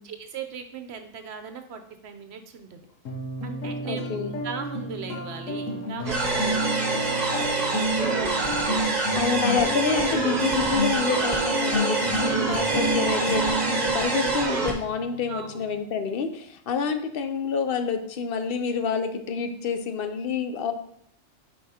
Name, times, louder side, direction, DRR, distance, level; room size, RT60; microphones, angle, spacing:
voice 1, 0.0-2.8 3.4-8.8 9.5-9.6 15.3-15.5, right 6 dB, 65° right, 7 dB, 0.9 m, -38 dB
sound 1, 3.1-15.8, left 1 dB, 85° left, 1.3 m, -31 dB
voice 2, 3.8-4.3 9.1-20.7, left 5 dB, 55° left, 7 dB, 0.7 m, -28 dB
sound 2, 6.0-14.7, right 3 dB, 35° right, 1.0 m, -26 dB
7.3 x 4.7 x 2.8 m, 0.68 s
omnidirectional pair, 1.3 m